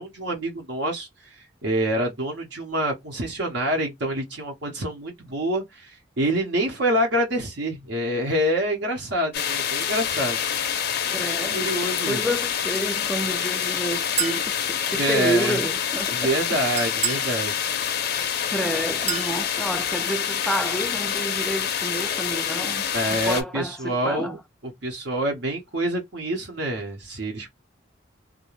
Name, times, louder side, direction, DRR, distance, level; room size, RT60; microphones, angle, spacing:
voice 1, 0.0-1.3 1.6-10.4 11.2-12.2 14.9-15.6 16.1-17.5 22.9-24.4 24.6-27.5, right 1 dB, 70° right, 0.8 m, -26 dB
sound 1, 9.3-23.4, left 8 dB, 55° left, 0.5 m, -27 dB
voice 2, 11.1-16.3 18.4-22.8 23.1-24.4, right 1 dB, 5° left, 0.3 m, -30 dB
Chink clink, 14.2-14.5 16.8-17.3 19.1-19.3, right 6 dB, 40° right, 0.7 m, -27 dB
2.4 x 2.2 x 2.9 m
head